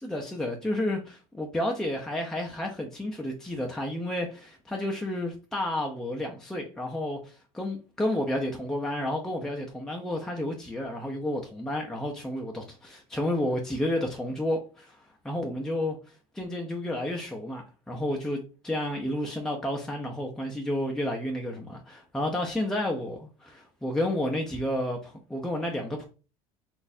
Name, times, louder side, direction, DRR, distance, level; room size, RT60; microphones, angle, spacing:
voice 1, 0.0-16.0 16.3-26.0, left 1 dB, 5° left, 0.5 m, -31 dB
4.0 x 2.5 x 2.6 m
supercardioid pair, 110°, 14 cm